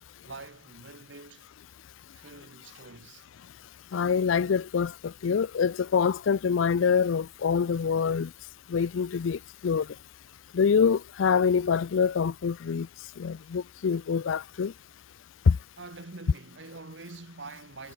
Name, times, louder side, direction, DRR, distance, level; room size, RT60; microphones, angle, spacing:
voice 1, 0.2-1.5 2.1-3.3 15.8-17.9, right 3 dB, 65° right, 1.7 m, -45 dB
voice 2, 3.9-8.3 8.7-9.9 10.5-12.9 13.2-14.7 15.5-15.6, left 6 dB, 80° left, 0.4 m, -25 dB
head